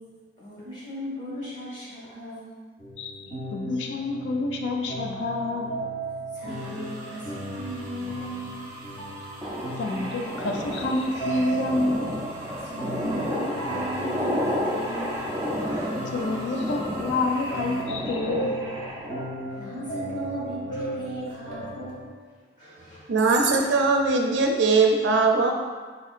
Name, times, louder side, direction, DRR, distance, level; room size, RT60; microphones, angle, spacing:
voice 1, 0.4-2.6 6.3-8.7 12.5-16.1 19.5-22.1 22.6-23.1 23.5-23.7, equal, 40° left, -8 dB, 1.3 m, -37 dB
sound 1, 2.8-22.1, right 2 dB, 25° left, 0.8 m, -37 dB
voice 2, 3.5-5.7 9.8-12.1 16.1-18.6, left 2 dB, 75° left, 2 dB, 0.4 m, -28 dB
sound 2, 6.5-17.8, right 1 dB, 45° right, 0.8 m, -43 dB
sound 3, 9.4-19.3, equal, 15° right, 0.4 m, -31 dB
voice 3, 23.1-25.5, right 3 dB, 75° right, 2 dB, 0.4 m, -20 dB
4.1 x 2.7 x 2.4 m, 1.5 s
head